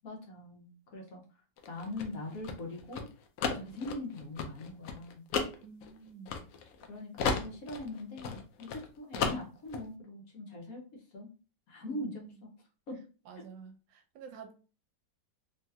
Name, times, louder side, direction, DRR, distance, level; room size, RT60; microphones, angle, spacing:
voice 1, 0.0-1.2 1.7-3.1 3.5-5.2 6.9-11.3 11.7-12.5 12.9-13.0 13.3-13.4, left 2 dB, 60° left, 1.1 m, -42 dB
sound 1, 1.6-6.9 7.2-8.8 9.1-9.8, left 5 dB, 75° left, 0.7 m, -34 dB
voice 2, 5.6-6.3 11.8-12.4 13.3-14.5, right 6 dB, 85° right, 1.3 m, -49 dB
3.1 x 2.9 x 2.2 m
omnidirectional pair, 1.9 m